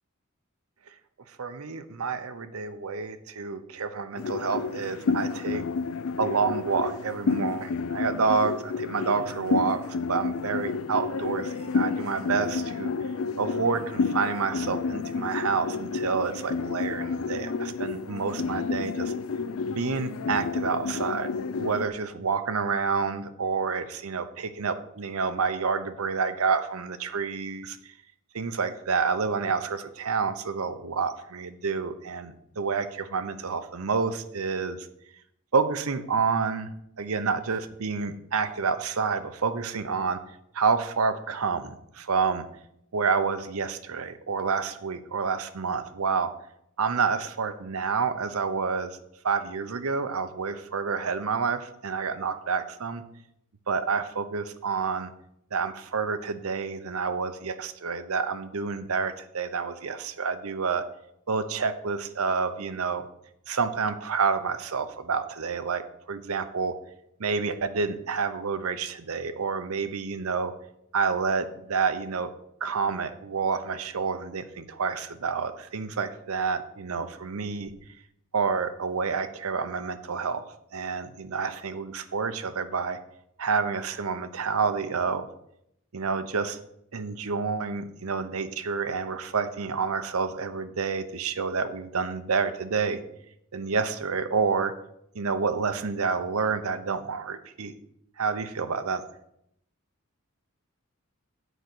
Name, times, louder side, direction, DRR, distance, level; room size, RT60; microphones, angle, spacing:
voice 1, 1.4-5.6 6.2-12.9 13.4-19.1 19.7-21.3 21.6-27.9 28.3-34.9 35.5-36.7 37.0-40.2 40.5-42.4 42.9-46.3 46.8-49.0 49.2-53.0 53.7-55.1 55.5-60.8 61.3-63.1 63.5-65.8 66.1-66.7 67.2-70.5 70.9-72.3 72.6-77.7 78.3-80.4 80.7-83.0 83.4-85.3 85.9-86.6 86.9-93.0 93.5-94.7 95.1-97.7 98.2-99.0, right 5 dB, 85° right, 10 dB, 0.8 m, -28 dB
sound 1, 4.2-21.9, left 4 dB, 70° left, 0.4 m, -30 dB
8.1 x 5.0 x 6.1 m, 0.76 s
head